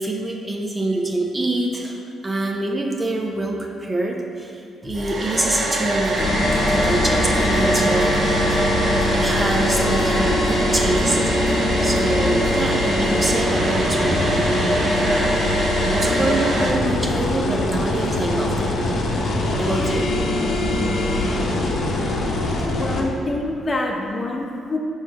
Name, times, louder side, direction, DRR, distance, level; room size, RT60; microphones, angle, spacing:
voice 1, 0.0-2.0 2.2-6.2 6.7-8.5 9.1-11.6 11.8-14.5 14.9-15.5 15.9-18.8 19.5-20.1, right 2 dB, 20° right, 1 dB, 0.6 m, -25 dB
sound 1, 4.8-12.6, right 1 dB, ahead, 1.2 m, -36 dB
Domestic sounds home sounds, 4.9-16.7, right 1 dB, 50° right, 0.9 m, -24 dB
sound 2, 6.2-23.0, left 1 dB, 60° left, 0.9 m, -22 dB
voice 2, 22.8-24.8, left 2 dB, 30° left, 0 dB, 0.8 m, -26 dB
6.2 x 3.2 x 5.5 m, 2.4 s
cardioid pair, 90°, 0 cm